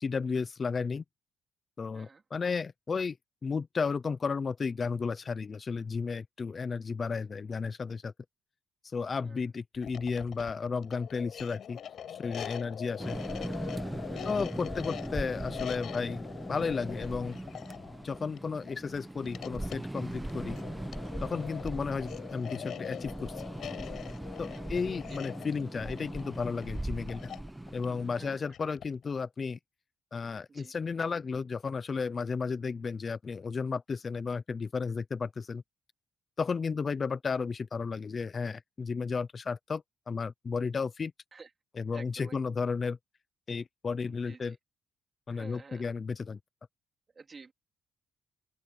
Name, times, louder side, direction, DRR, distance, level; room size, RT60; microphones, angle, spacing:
voice 1, 0.0-1.0 1.8-3.2 3.4-8.1 8.8-11.8 12.1-13.2 14.2-17.4 18.0-20.6 21.2-23.4 24.4-27.3 27.7-29.6 30.1-35.6 36.4-41.1 41.8-43.0 43.5-44.6 45.3-46.4, left 5 dB, 40° left, 0.6 m, -33 dB
sound 1, 9.7-29.0, left 9 dB, 65° left, 7.5 m, -43 dB
sound 2, 13.0-28.4, right 1 dB, 10° right, 1.0 m, -39 dB
voice 2, 24.5-25.3 28.1-28.4 30.5-30.7 41.3-41.5 41.9-42.5 44.0-44.5 45.3-45.8 47.1-47.5, right 4 dB, 35° right, 3.0 m, -51 dB
open air
cardioid pair, 90°, 0 cm